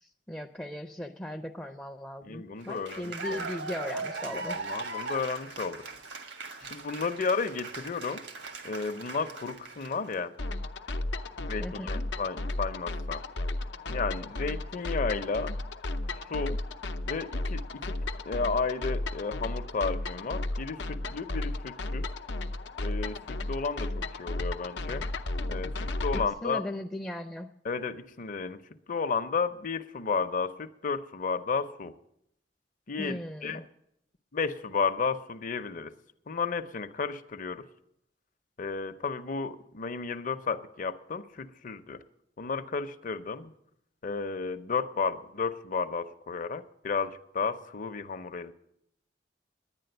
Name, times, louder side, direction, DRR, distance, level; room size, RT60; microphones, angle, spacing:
voice 1, 0.0-4.6 11.6-12.0 26.1-27.5 33.0-33.6, left 1 dB, 5° left, 4 dB, 0.4 m, -38 dB
voice 2, 2.2-3.4 4.3-5.9 6.7-8.2 8.6-10.3 11.4-13.2 13.9-15.6 16.3-16.6 17.0-18.0 18.3-22.1 22.8-25.1 25.5-26.6 27.6-28.6 28.9-31.9 32.9-33.7 34.3-35.9 36.3-37.7 38.6-42.0 42.4-43.5 44.0-48.5, left 5 dB, 50° left, 10 dB, 0.6 m, -33 dB
Cheering / Applause, 2.6-10.1, right 3 dB, 85° right, 1.5 m, -39 dB
sound 1, 10.4-26.2, left 2 dB, 85° left, 0.7 m, -34 dB
10.5 x 9.7 x 7.8 m, 0.77 s
head